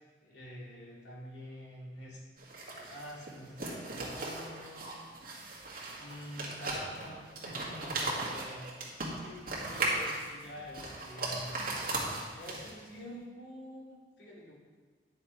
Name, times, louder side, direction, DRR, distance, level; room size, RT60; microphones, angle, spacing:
voice 1, 0.2-2.2 2.7-5.1 6.0-8.7 9.2-11.7 12.3-14.5, equal, 75° left, -5 dB, 2.6 m, -47 dB
sound 1, 2.4-12.9, right 2 dB, 55° right, 1.9 m, -37 dB
10.5 x 6.7 x 4.6 m, 1.5 s
head